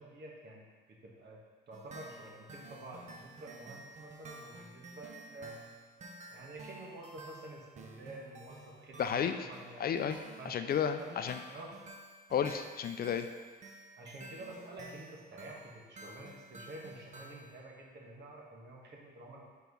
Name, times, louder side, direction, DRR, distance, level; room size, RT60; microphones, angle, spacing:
voice 1, 0.0-1.4 1.7-5.6 6.3-9.8 10.4-10.6 11.0-11.7 14.0-19.4, right 2 dB, 60° right, -2 dB, 1.5 m, -49 dB
sound 1, 1.7-17.6, right 2 dB, 35° right, 0.7 m, -52 dB
voice 2, 9.0-9.5 9.8-11.4 12.3-13.3, left 8 dB, 50° left, 8 dB, 0.4 m, -33 dB
4.6 x 4.5 x 5.4 m, 1.5 s
cardioid pair, 90°, 20 cm